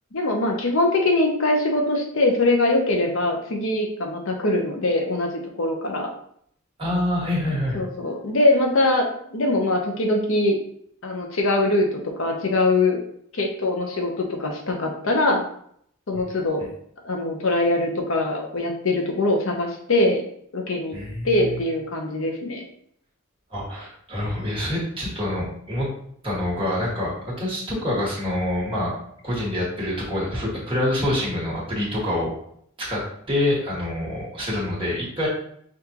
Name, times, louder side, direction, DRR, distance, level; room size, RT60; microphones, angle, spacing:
voice 1, 0.1-5.3 5.6-6.1 7.7-10.6 11.0-13.0 13.3-15.4 16.1-16.7 17.0-20.2 20.5-21.0 21.2-22.6, left 2 dB, 70° left, 2 dB, 0.8 m, -22 dB
voice 2, 6.8-7.8 20.9-21.6 23.5-25.9 26.2-28.9 29.2-32.3 32.8-35.3, left 1 dB, 25° right, -6 dB, 1.7 m, -26 dB
5.9 x 2.5 x 2.9 m, 0.67 s
head